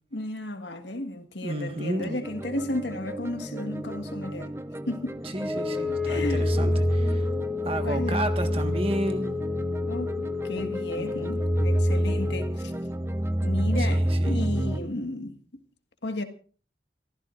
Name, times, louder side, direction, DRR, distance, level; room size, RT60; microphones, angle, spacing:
voice 1, 0.1-4.5 4.9-5.2 6.1-6.5 7.8-8.2 9.8-12.7 13.4-15.4 16.0-16.2, left 1 dB, 80° left, 1.7 m, -33 dB
voice 2, 1.4-2.2 5.2-7.3 7.6-9.4 10.9-11.4 13.8-14.4, right 1 dB, 30° right, 1.5 m, -32 dB
sound 1, 2.2-14.8, right 1 dB, 15° right, 0.6 m, -28 dB
Wind instrument woodwind instrument, 5.4-12.6, left 6 dB, ahead, 2.7 m, -32 dB
28.5 x 14.5 x 2.5 m
head